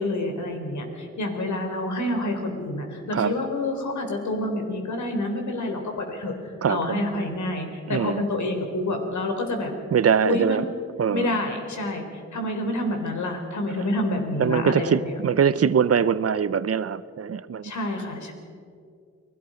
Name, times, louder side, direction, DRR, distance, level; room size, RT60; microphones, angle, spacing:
voice 1, 0.0-6.3 6.7-9.7 10.2-10.6 11.1-12.0 12.3-15.2 17.6-18.3, left 2 dB, 80° left, 4 dB, 4.0 m, -28 dB
voice 2, 6.6-7.1 7.9-8.3 9.9-10.7 11.0-11.4 13.7-13.9 14.4-17.7, right 7 dB, 55° right, 16 dB, 0.7 m, -23 dB
29.5 x 20.0 x 5.2 m, 2.3 s
wide cardioid pair, 100°, 29 cm